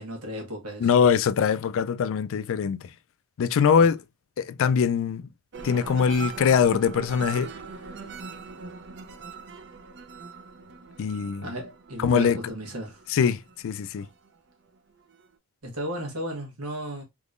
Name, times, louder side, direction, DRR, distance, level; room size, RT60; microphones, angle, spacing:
voice 1, 0.0-0.9 3.7-3.9 11.4-13.0 15.6-17.0, equal, 85° right, 1.4 m, -35 dB
voice 2, 0.8-2.8 3.4-4.0 4.4-5.3 5.6-7.5 11.0-11.5 12.0-12.4 13.1-14.1, left 7 dB, 65° left, 0.3 m, -22 dB
sound 1, 5.5-14.3 14.8-15.3, right 5 dB, 55° right, 0.5 m, -41 dB
3.6 x 2.9 x 2.4 m
head